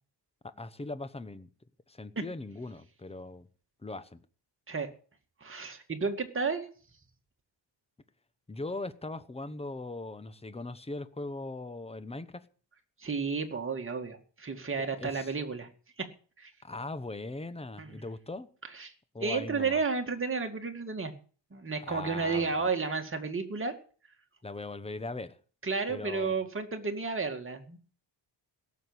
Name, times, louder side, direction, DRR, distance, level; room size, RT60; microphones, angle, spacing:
voice 1, 0.4-1.5 1.9-3.5 3.8-4.2 8.5-12.4 14.8-15.3 16.6-18.5 19.1-19.8 21.9-22.6 24.4-25.4 25.9-26.4, left 2 dB, 15° left, 0.9 m, -40 dB
voice 2, 5.4-6.7 13.0-15.7 16.0-16.1 16.4-16.5 17.8-18.0 18.7-18.9 19.2-21.1 21.5-23.7 25.6-27.8, right 4 dB, 25° right, 2.2 m, -32 dB
17.5 x 7.4 x 8.1 m
wide cardioid pair, 130°, 45 cm